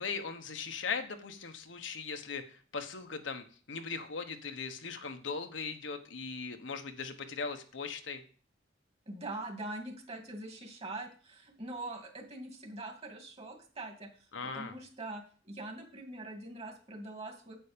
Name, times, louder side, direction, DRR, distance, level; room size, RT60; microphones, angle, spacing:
voice 1, 0.0-8.2 14.3-14.7, left 5 dB, 75° left, 6 dB, 1.1 m, -39 dB
voice 2, 9.1-14.3 14.5-17.6, right 2 dB, 35° right, 3 dB, 2.4 m, -43 dB
9.1 x 8.4 x 5.2 m, 0.42 s
head